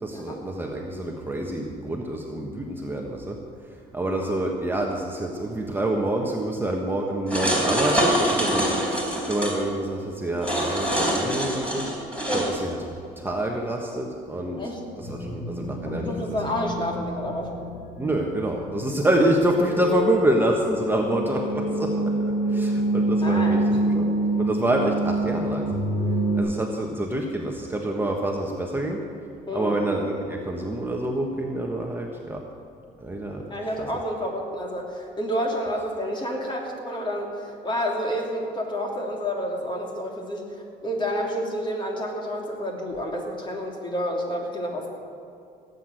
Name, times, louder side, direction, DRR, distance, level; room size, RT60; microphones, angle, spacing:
voice 1, 0.0-3.4 3.9-8.7 9.3-11.8 12.3-12.8 13.2-14.6 15.0-16.4 18.0-21.9 22.5-25.8 26.4-29.0 29.5-32.4 33.0-33.4 33.8-33.9, right 1 dB, 10° right, 0 dB, 1.3 m, -27 dB
sound 1, 7.3-9.5 10.4-12.5, equal, 5° left, 4.1 m, -24 dB
sound 2, 15.0-26.4, right 1 dB, 85° left, 2.8 m, -27 dB
voice 2, 15.8-17.5 23.2-24.0 29.5-29.8 33.5-40.5 40.8-44.9, equal, 30° left, 0 dB, 3.0 m, -29 dB
17.5 x 8.2 x 7.7 m, 2.5 s
cardioid pair, 110°, 17 cm